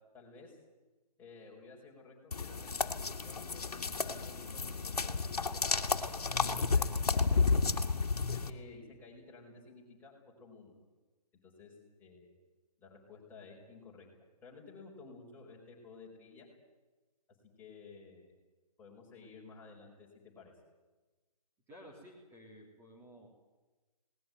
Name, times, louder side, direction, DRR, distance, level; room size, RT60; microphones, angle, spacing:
voice 1, 0.1-0.6 1.2-7.8 8.3-10.8 11.4-11.7 12.0-12.4 12.8-14.1 14.4-16.5 17.6-18.3 18.8-20.1 20.4-20.5, left 4 dB, 10° left, -3 dB, 4.9 m, -54 dB
sound 1, 2.3-8.5, left 4 dB, 65° left, 2.0 m, -32 dB
voice 2, 21.7-23.3, equal, 10° right, -3 dB, 3.3 m, -54 dB
20.5 x 19.5 x 9.2 m, 1.2 s
figure-of-eight pair, 150°, 21 cm